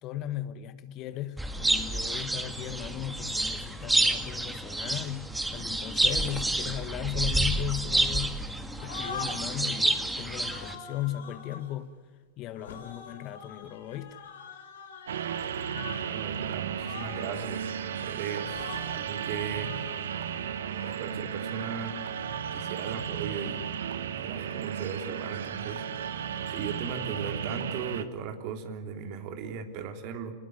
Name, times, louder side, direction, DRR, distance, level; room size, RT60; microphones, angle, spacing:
voice 1, 0.0-8.4 8.8-11.9 12.4-14.2, left 12 dB, 45° left, 1.4 m, -36 dB
sound 1, 1.4-10.8, right 1 dB, 5° right, 2.0 m, -29 dB
sound 2, 7.8-8.5 8.8-9.6 10.2-11.7 12.5-16.1 16.3-16.5 16.8-17.5 18.4-19.0 19.5-20.9, left 5 dB, 75° left, 4.5 m, -44 dB
sound 3, 15.1-28.0, right 8 dB, 80° right, 1.6 m, -34 dB
voice 2, 15.9-17.7 18.0-19.7 20.8-22.0 22.5-23.6 24.2-26.1 26.5-30.3, right 6 dB, 50° right, 3.2 m, -37 dB
28.5 x 20.0 x 9.5 m
hypercardioid pair, 110°, 0 cm